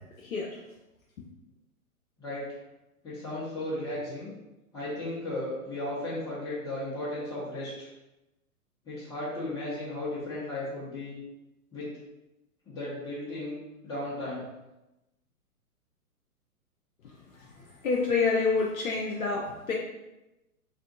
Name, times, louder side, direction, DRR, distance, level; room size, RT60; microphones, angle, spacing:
voice 1, 3.0-4.3 4.7-7.9 8.8-11.2 11.7-11.9 12.7-13.5 13.8-14.4, left 1 dB, 10° left, -12 dB, 1.0 m, -35 dB
voice 2, 17.8-19.7, left 4 dB, 70° left, -2 dB, 0.6 m, -27 dB
3.5 x 2.5 x 2.5 m, 0.98 s
figure-of-eight pair, 115°, 44 cm